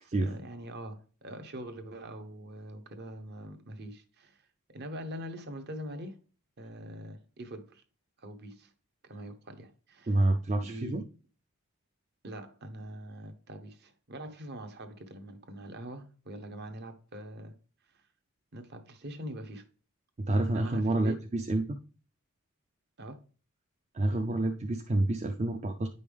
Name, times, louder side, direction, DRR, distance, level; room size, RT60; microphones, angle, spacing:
voice 1, 0.0-6.2 6.6-7.8 8.2-8.7 9.0-10.3 10.6-11.0 12.2-17.5 17.9-18.0 18.5-19.7 20.5-21.2 23.0-23.2, right 1 dB, 50° right, 0.9 m, -43 dB
voice 2, 10.1-11.0 20.2-21.8 23.9-25.9, right 2 dB, 30° right, 0.4 m, -28 dB
9.4 x 5.4 x 3.4 m
head